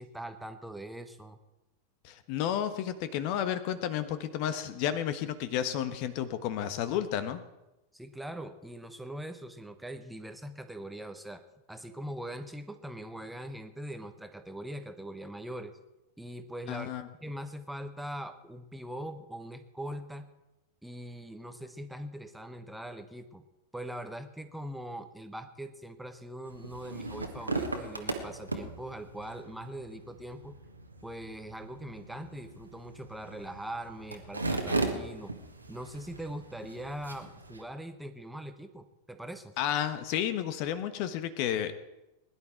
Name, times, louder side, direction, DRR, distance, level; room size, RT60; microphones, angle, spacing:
voice 1, 0.0-1.4 7.9-11.4 11.7-15.8 16.2-16.9 17.2-20.3 20.8-23.5 23.7-30.6 31.0-35.3 35.7-39.5, right 1 dB, 5° right, 8 dB, 1.1 m, -42 dB
voice 2, 2.0-7.4 16.7-17.0 39.6-41.7, left 10 dB, 45° left, 11 dB, 1.2 m, -32 dB
sound 1, 26.5-37.6, right 2 dB, 80° right, 1.7 m, -38 dB
20.5 x 11.0 x 4.6 m, 0.97 s
figure-of-eight pair, 90°, 0 cm